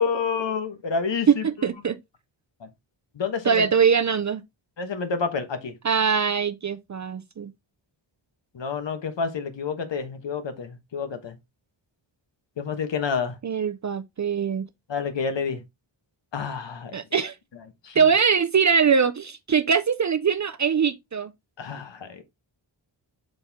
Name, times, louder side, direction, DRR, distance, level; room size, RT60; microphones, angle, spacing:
voice 1, 0.0-1.5 3.1-3.7 4.8-5.7 8.5-11.4 12.6-13.4 14.9-15.6 16.3-16.9 17.8-18.0 21.6-22.2, left 5 dB, 60° left, 1.2 m, -28 dB
voice 2, 1.3-2.0 3.4-4.4 5.8-7.5 13.4-14.7 16.9-17.4 18.0-21.3, right 6 dB, 40° right, 0.4 m, -22 dB
6.6 x 4.2 x 3.5 m
wide cardioid pair, 165°, 48 cm